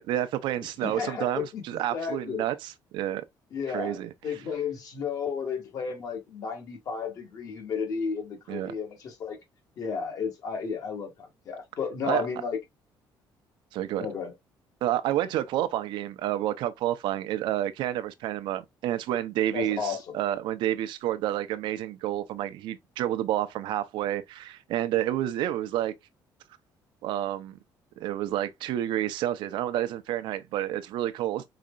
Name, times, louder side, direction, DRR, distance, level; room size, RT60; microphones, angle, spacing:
voice 1, 0.0-3.2 3.7-4.4 8.5-8.7 12.0-12.3 13.7-14.1 14.8-25.9 27.0-27.6 28.0-31.4, right 12 dB, 80° right, 0.7 m, -29 dB
voice 2, 0.8-1.6 1.9-2.5 3.5-4.0 4.2-9.4 9.8-12.6 14.0-14.3 19.5-20.0, left 6 dB, 45° left, 1.9 m, -33 dB
5.0 x 4.3 x 2.4 m
cardioid pair, 175°, 8 cm